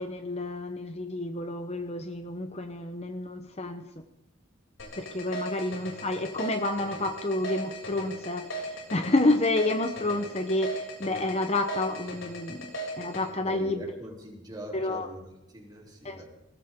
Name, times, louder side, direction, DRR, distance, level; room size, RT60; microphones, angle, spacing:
voice 1, 0.0-3.8 5.0-12.6 13.0-13.8 14.7-15.1 16.0-16.2, left 2 dB, 30° left, 7 dB, 1.0 m, -29 dB
sound 1, 4.8-13.2, right 1 dB, 75° left, 6.8 m, -37 dB
voice 2, 13.4-16.2, equal, 20° right, 0 dB, 3.4 m, -43 dB
20.0 x 17.5 x 3.8 m, 0.92 s
head